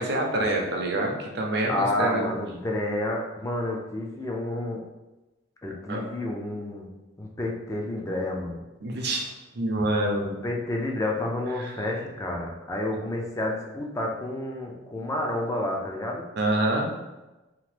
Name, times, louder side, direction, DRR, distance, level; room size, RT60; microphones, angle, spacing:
voice 1, 0.0-2.2 5.9-6.0 8.8-10.3 11.6-11.7 16.4-16.9, right 1 dB, 55° right, 0 dB, 0.5 m, -26 dB
voice 2, 1.7-4.8 5.6-6.9 7.2-8.6 10.2-16.2, left 1 dB, 15° left, -1 dB, 0.3 m, -30 dB
2.8 x 2.1 x 3.2 m, 1.1 s
head